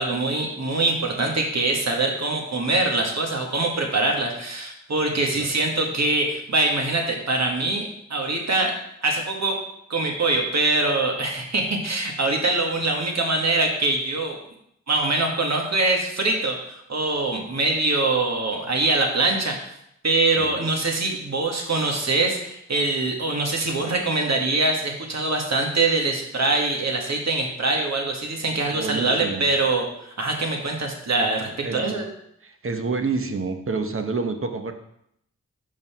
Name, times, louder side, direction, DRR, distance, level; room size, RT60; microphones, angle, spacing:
voice 1, 0.0-8.7 9.0-9.6 9.9-14.4 14.9-19.7 20.0-32.1, right 2 dB, 60° right, 1 dB, 1.6 m, -23 dB
voice 2, 5.1-5.5 20.4-20.7 28.7-29.6 31.6-32.0 32.4-34.7, right 4 dB, 45° right, 6 dB, 0.9 m, -29 dB
5.5 x 5.3 x 5.6 m, 0.75 s
wide cardioid pair, 70°, 31 cm